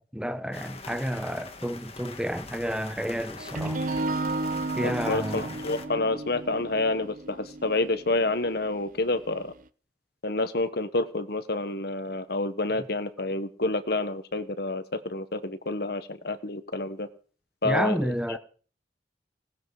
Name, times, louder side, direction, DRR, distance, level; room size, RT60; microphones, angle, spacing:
voice 1, 0.1-3.8 4.8-5.6 17.6-18.4, equal, 5° right, 1.0 m, -30 dB
sound 1, 0.5-5.9, left 4 dB, 35° left, 1.7 m, -43 dB
sound 2, 3.4-9.3, right 2 dB, 50° right, 0.7 m, -33 dB
voice 2, 4.8-9.5 10.2-17.1 17.6-18.4, left 2 dB, 65° left, 1.3 m, -28 dB
18.0 x 13.5 x 4.9 m
head